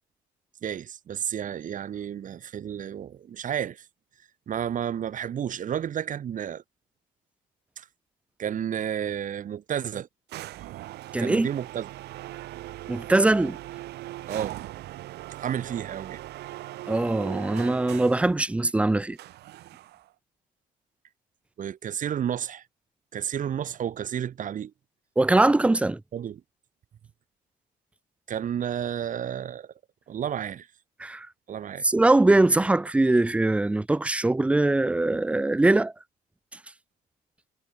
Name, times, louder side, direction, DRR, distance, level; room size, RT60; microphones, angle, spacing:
voice 1, 0.6-3.8 4.5-6.6 7.8-7.9 8.4-10.1 11.2-11.9 14.3-14.6 15.4-16.2 21.6-22.6 23.1-24.7 26.1-26.4 28.3-29.7 30.1-30.7 31.5-31.9, right 9 dB, 50° right, 4.5 m, -31 dB
sound 1, 10.3-18.3 19.2-20.1, right 16 dB, 75° right, 3.6 m, -40 dB
voice 2, 11.1-11.5 12.9-13.6 16.9-19.2 25.2-26.0 31.0-31.3 31.8-35.9, right 2 dB, 5° right, 0.5 m, -22 dB
cardioid pair, 110°, 17 cm